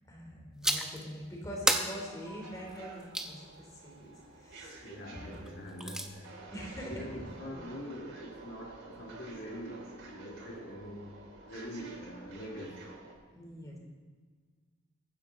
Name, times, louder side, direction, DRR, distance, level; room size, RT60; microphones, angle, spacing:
voice 1, 0.1-4.8 5.1-5.4 6.5-7.4 13.3-13.8, equal, 15° left, -1 dB, 3.3 m, -44 dB
sound 1, 0.6-1.0 1.7-3.3 5.5-6.1, right 1 dB, 5° right, 0.8 m, -32 dB
sound 2, 2.0-13.1, right 2 dB, 70° right, 4.2 m, -50 dB
voice 2, 4.8-6.4 6.9-11.1 11.4-12.8, equal, 55° left, -2 dB, 2.2 m, -44 dB
22.5 x 9.8 x 3.9 m, 1.5 s
head